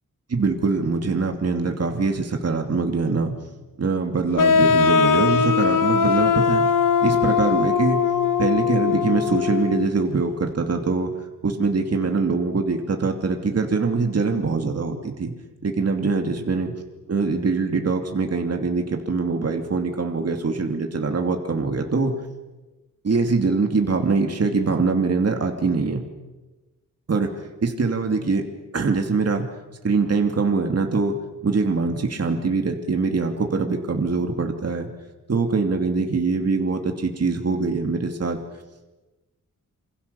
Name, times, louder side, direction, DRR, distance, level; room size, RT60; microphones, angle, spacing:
voice 1, 0.3-3.3 3.8-6.7 7.0-8.0 8.4-11.1 11.4-15.3 15.6-16.7 17.1-22.1 23.0-26.0 27.1-27.3 27.6-28.4 28.7-29.5 29.8-31.2 31.4-34.9 35.3-38.4, right 4 dB, 50° right, 3 dB, 2.8 m, -23 dB
sound 1, 4.4-9.9, left 6 dB, 70° left, 1.1 m, -20 dB
27.5 x 26.5 x 7.0 m, 1.1 s
wide cardioid pair, 145°, 33 cm